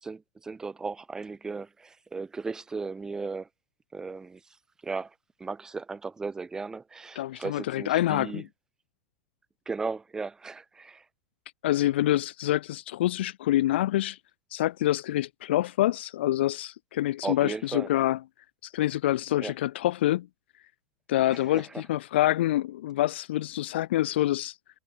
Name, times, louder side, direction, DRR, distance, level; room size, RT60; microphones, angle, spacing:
voice 1, 0.0-3.5 3.9-4.4 4.8-5.1 5.4-8.4 9.7-11.0 17.2-17.9 19.4-19.5 21.3-21.7, right 4 dB, 10° right, 5.9 m, -36 dB
voice 2, 7.2-8.4 11.6-14.2 14.5-18.2 18.6-20.3 21.1-24.6, left 14 dB, 80° left, 1.7 m, -26 dB
supercardioid pair, 160°, 6 cm